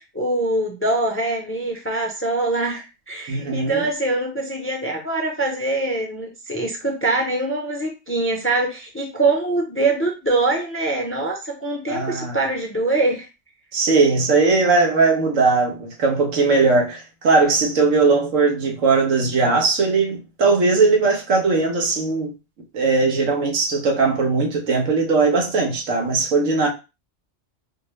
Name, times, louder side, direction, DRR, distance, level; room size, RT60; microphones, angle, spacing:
voice 1, 0.0-13.3, right 2 dB, 15° left, 0.4 m, -23 dB
voice 2, 3.3-3.8 11.9-12.4 13.7-22.3 22.7-26.7, right 4 dB, 90° right, 1.3 m, -19 dB
4.3 x 2.0 x 3.1 m
omnidirectional pair, 1.3 m